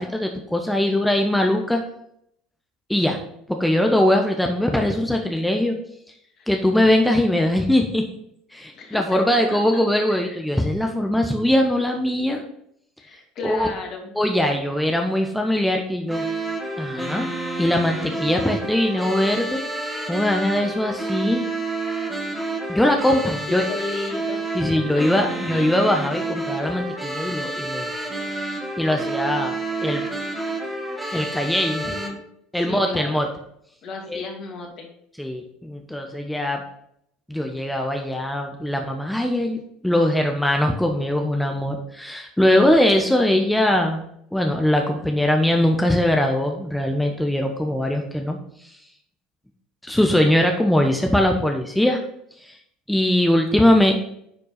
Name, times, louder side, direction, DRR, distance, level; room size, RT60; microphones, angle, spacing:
voice 1, 0.0-1.8 2.9-3.2 3.5-5.8 6.5-8.0 8.5-12.4 13.4-13.7 14.1-16.2 16.8-17.3 17.6-21.4 22.7-23.7 24.5-27.9 28.3-28.4 28.8-30.0 31.1-31.8 32.5-33.3 34.1-34.2 35.2-36.6 37.3-44.0 44.3-48.4 49.8-52.0 52.4-52.6 52.9-54.1, left 1 dB, 5° left, 3 dB, 1.0 m, -21 dB
voice 2, 8.8-9.8 10.1-10.4 13.0-14.1 23.2-24.6 24.9-25.0 25.5-25.8 31.8-32.1 32.5-33.2 33.8-34.9, left 3 dB, 50° left, 1 dB, 2.3 m, -34 dB
sound 1, 16.1-32.1, right 2 dB, 15° right, 1.8 m, -29 dB
9.9 x 4.5 x 4.1 m, 0.72 s
hypercardioid pair, 75°, 0 cm